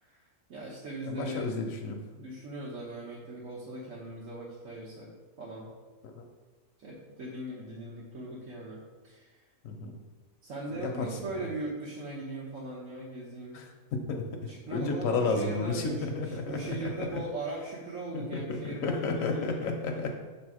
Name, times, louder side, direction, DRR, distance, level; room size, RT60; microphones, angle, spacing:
voice 1, 0.5-1.5 2.1-5.1 5.4-5.7 6.8-9.4 10.4-13.6 14.5-19.6 19.9-20.1, right 2 dB, 75° right, -7 dB, 1.4 m, -39 dB
voice 2, 1.1-2.0 6.1-6.2 9.6-9.9 10.8-11.1 11.3-11.4 13.5-13.6 13.9-14.2 14.7-17.2 18.1-20.1, left 3 dB, 80° left, 2 dB, 1.1 m, -32 dB
6.6 x 3.4 x 4.7 m, 1.3 s
omnidirectional pair, 1.4 m